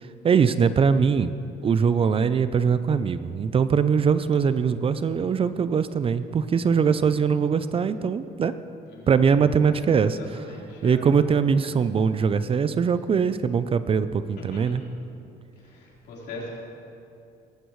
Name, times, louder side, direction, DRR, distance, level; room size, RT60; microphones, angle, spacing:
voice 1, 0.0-1.3 1.6-8.5 9.1-10.2 10.8-14.8, right 6 dB, 35° right, 13 dB, 0.5 m, -22 dB
voice 2, 6.8-7.1 8.9-9.1 9.6-11.4 14.4-14.8 15.6-16.5, left 2 dB, 75° left, -4 dB, 4.1 m, -41 dB
18.5 x 15.0 x 3.2 m, 2.5 s
cardioid pair, 110°, 17 cm